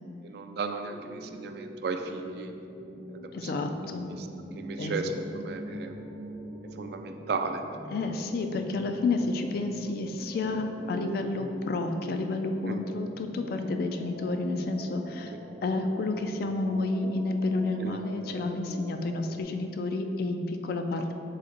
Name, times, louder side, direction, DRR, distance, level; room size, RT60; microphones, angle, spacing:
voice 1, 0.2-2.5 3.1-3.5 4.2-4.3 4.6-6.0 6.8-7.6 12.7-12.8 17.8-18.0, right 4 dB, 60° right, 6 dB, 0.3 m, -35 dB
sound 1, 0.8-19.4, right 1 dB, 85° right, 0.7 m, -43 dB
voice 2, 3.3-4.1 4.8-5.0 7.9-15.3 15.6-21.1, left 3 dB, 55° left, 6 dB, 0.3 m, -30 dB
4.1 x 3.3 x 3.8 m, 2.6 s
head